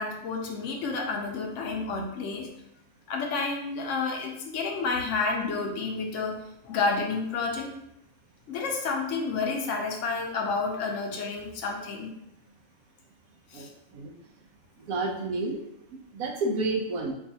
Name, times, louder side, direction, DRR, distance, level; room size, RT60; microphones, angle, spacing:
voice 1, 0.0-2.5 3.1-6.4 6.6-7.7 8.5-12.1 13.5-13.7, left 4 dB, 65° left, 2 dB, 0.8 m, -30 dB
voice 2, 14.9-15.6 16.1-17.1, right 2 dB, 75° right, 1 dB, 1.1 m, -29 dB
4.6 x 2.4 x 2.7 m, 0.79 s
omnidirectional pair, 1.6 m